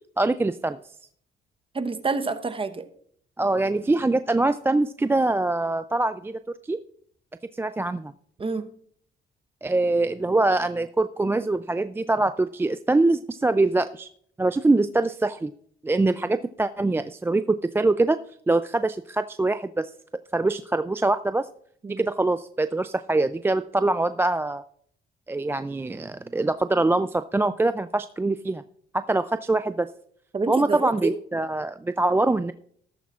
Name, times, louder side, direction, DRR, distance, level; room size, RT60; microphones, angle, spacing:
voice 1, 0.2-0.8 3.4-6.8 7.5-8.1 9.6-14.1 14.4-15.5 15.8-18.2 18.5-19.9 20.3-21.5 22.0-24.6 25.3-28.6 28.9-29.9 30.5-32.5, right 2 dB, 10° right, 11 dB, 0.3 m, -24 dB
voice 2, 1.7-2.9 8.4-8.7 21.8-22.0 30.3-31.1, right 4 dB, 25° right, 9 dB, 1.0 m, -28 dB
13.5 x 13.5 x 2.4 m, 0.64 s
cardioid pair, 90°, 20 cm